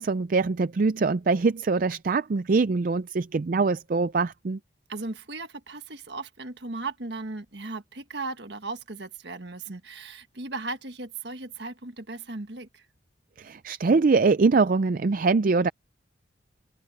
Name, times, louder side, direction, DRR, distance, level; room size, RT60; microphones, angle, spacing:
voice 1, 0.0-4.6 13.4-15.7, right 4 dB, 45° right, 0.4 m, -23 dB
voice 2, 4.9-12.9, right 3 dB, 60° right, 1.6 m, -37 dB
open air
head